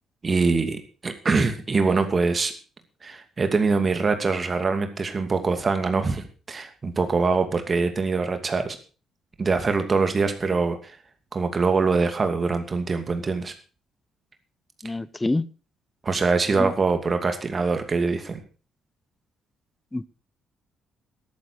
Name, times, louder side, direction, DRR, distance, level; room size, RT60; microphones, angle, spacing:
voice 1, 0.2-2.5 3.0-8.8 9.4-11.0 11.3-13.5 16.0-18.4, right 4 dB, 35° right, 2.6 m, -23 dB
voice 2, 14.8-15.4 16.6-16.7 19.9-20.1, left 2 dB, 15° left, 0.9 m, -26 dB
13.5 x 13.0 x 4.8 m
figure-of-eight pair, 45°, 0 cm